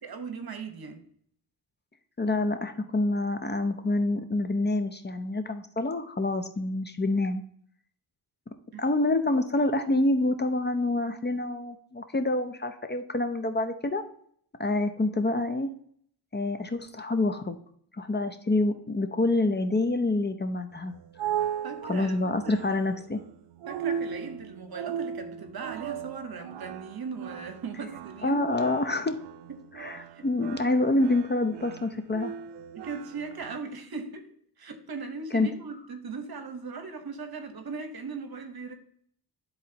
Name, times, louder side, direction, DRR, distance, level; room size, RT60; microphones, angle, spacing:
voice 1, 0.0-1.0 8.7-8.8 21.6-22.7 23.7-28.4 29.5-29.7 30.0-30.3 32.7-38.7, right 4 dB, 60° right, 1.2 m, -39 dB
voice 2, 2.2-7.4 8.8-14.0 14.6-15.7 16.3-17.6 18.0-20.9 21.8-23.2 28.2-29.2 29.8-32.3 35.3-35.5, left 2 dB, 25° left, 0.7 m, -27 dB
sound 1, 20.7-33.6, right 9 dB, 85° right, 0.5 m, -37 dB
12.0 x 4.0 x 2.9 m
cardioid pair, 75°, 41 cm